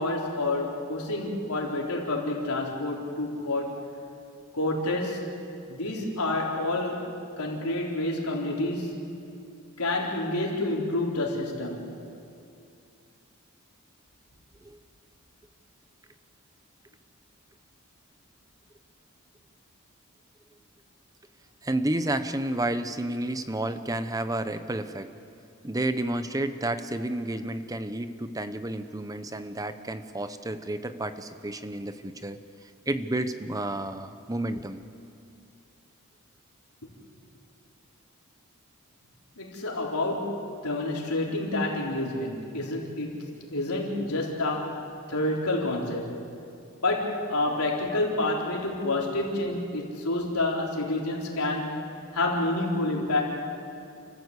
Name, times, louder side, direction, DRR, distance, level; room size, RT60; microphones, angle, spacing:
voice 1, 0.0-3.8 4.5-5.3 5.7-7.1 7.4-9.0 9.8-11.9 39.4-46.2 46.8-51.8 52.1-53.2, left 2 dB, 85° left, -2 dB, 4.2 m, -29 dB
voice 2, 21.6-25.1 25.6-32.4 32.9-34.8, right 1 dB, 15° right, 10 dB, 0.9 m, -31 dB
29.5 x 14.5 x 8.3 m, 2.6 s
head